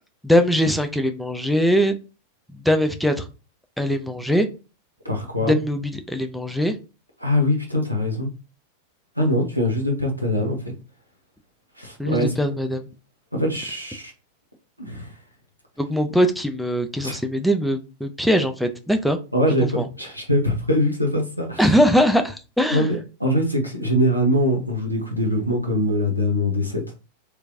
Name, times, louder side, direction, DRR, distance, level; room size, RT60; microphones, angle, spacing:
voice 1, 0.2-2.0 2.5-3.3 3.8-4.5 5.4-6.7 12.0-12.9 15.8-19.2 19.6-19.9 21.6-22.9, equal, ahead, 0.5 m, -21 dB
voice 2, 5.0-5.6 7.2-8.3 9.2-10.7 11.8-12.3 13.3-14.1 14.8-15.1 17.0-17.2 19.3-21.7 22.7-27.0, left 1 dB, 90° left, 0.9 m, -23 dB
3.2 x 3.1 x 2.5 m
figure-of-eight pair, 90°, 0 cm